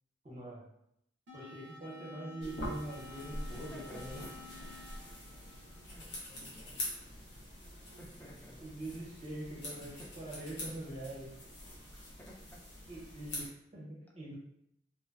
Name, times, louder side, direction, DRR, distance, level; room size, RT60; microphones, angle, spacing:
voice 1, 0.2-0.6 1.3-4.2 8.2-8.3 8.6-11.3 12.9-14.3, right 1 dB, 35° right, -5 dB, 0.7 m, -44 dB
sound 1, 1.3-6.3, left 3 dB, 80° right, 0.4 m, -53 dB
sound 2, 2.4-13.5, left 1 dB, 70° left, 0.7 m, -45 dB
voice 2, 3.5-4.5 5.9-6.8 8.0-8.6 8.9-9.1 9.8-10.1 11.8-12.7, equal, 10° left, -2 dB, 0.4 m, -54 dB
2.5 x 2.1 x 2.4 m, 0.77 s
head